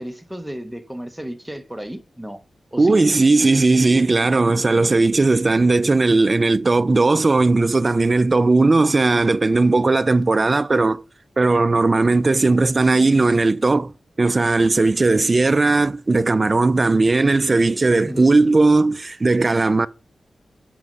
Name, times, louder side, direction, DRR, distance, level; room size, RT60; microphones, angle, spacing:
voice 1, 0.0-2.4 2.7-3.0 18.0-18.4, equal, 5° right, 1.0 m, -33 dB
voice 2, 2.8-11.0 11.4-13.9 14.2-19.9, right 3 dB, 35° right, 0.4 m, -17 dB
6.5 x 5.9 x 5.3 m
wide cardioid pair, 80°, 0 cm